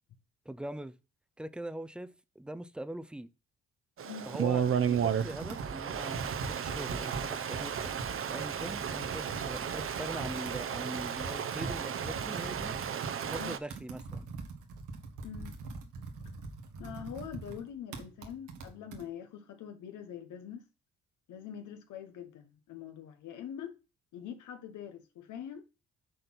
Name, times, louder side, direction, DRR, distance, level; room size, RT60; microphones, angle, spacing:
voice 1, 0.5-1.0 1.4-3.3 4.3-12.7 13.3-14.3, right 1 dB, 5° right, 0.5 m, -42 dB
voice 2, 4.0-4.3 13.4-13.5 15.2-15.5 16.8-20.6 21.3-23.8 24.1-25.6, left 9 dB, 80° left, 1.0 m, -44 dB
Stream, 4.0-13.6, right 8 dB, 45° right, 0.8 m, -34 dB
Computer keyboard, 4.4-19.0, right 3 dB, 90° right, 1.7 m, -43 dB
6.6 x 4.3 x 6.0 m
cardioid pair, 90°, 30 cm